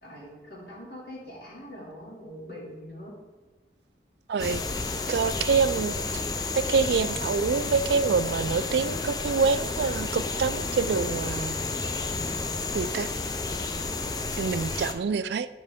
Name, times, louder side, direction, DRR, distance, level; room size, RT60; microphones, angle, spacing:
voice 1, 0.0-3.1, equal, 65° left, -5 dB, 2.6 m, -43 dB
voice 2, 4.3-4.6 5.1-6.0 6.5-11.6 12.7-13.1 14.4-15.5, right 5 dB, 75° right, 14 dB, 0.3 m, -26 dB
sound 1, 4.4-14.9, left 3 dB, 20° left, 0.4 m, -31 dB
9.8 x 5.3 x 3.6 m, 1.3 s
head